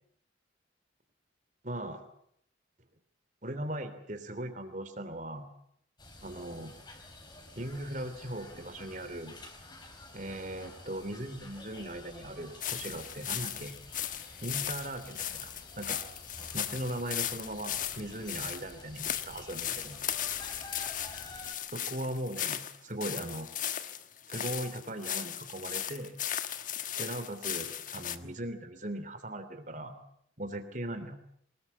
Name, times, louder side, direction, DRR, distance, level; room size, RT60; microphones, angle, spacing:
voice 1, 1.6-2.0 3.4-5.5 6.2-6.7 7.6-9.4 10.1-13.7 14.4-16.0 16.5-20.0 21.7-23.5 24.3-26.2 27.0-29.9 30.4-31.2, right 1 dB, 40° right, 10 dB, 3.1 m, -39 dB
sound 1, 6.0-21.6, left 2 dB, 25° left, 4.3 m, -50 dB
sound 2, 12.6-28.2, left 10 dB, 45° left, 1.4 m, -37 dB
24.5 x 20.5 x 8.3 m, 0.69 s
head